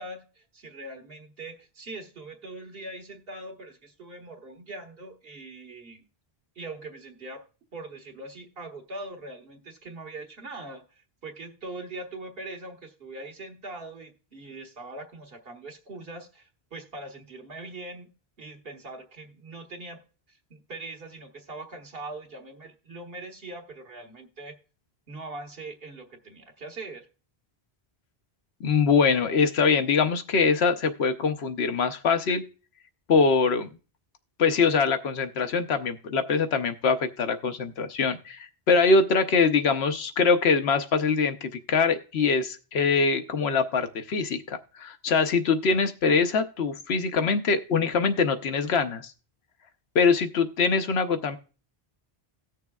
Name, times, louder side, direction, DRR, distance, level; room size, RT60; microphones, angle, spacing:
voice 1, 0.0-6.0 6.5-7.4 7.7-18.1 18.4-20.0 20.3-24.6 25.1-27.1, right 2 dB, 65° right, 3 dB, 1.6 m, -41 dB
voice 2, 28.6-32.4 33.1-33.7 34.4-49.1 49.9-51.4, left 5 dB, 85° left, 9 dB, 1.1 m, -23 dB
18.0 x 6.5 x 2.3 m, 0.36 s
omnidirectional pair, 1.0 m